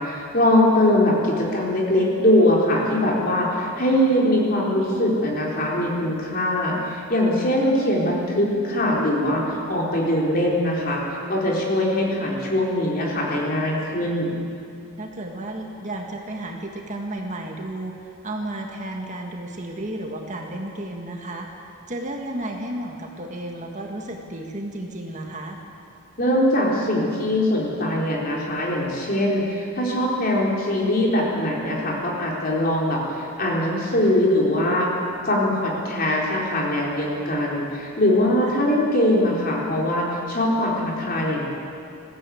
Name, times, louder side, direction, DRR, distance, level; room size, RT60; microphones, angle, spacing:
voice 1, 0.0-14.4 26.2-34.9 35.2-41.4, left 1 dB, 45° left, -3 dB, 4.0 m, -22 dB
voice 2, 15.0-21.5 21.9-25.6 38.5-38.6, right 1 dB, 35° right, 1 dB, 1.8 m, -33 dB
20.5 x 15.0 x 8.5 m, 2.6 s
head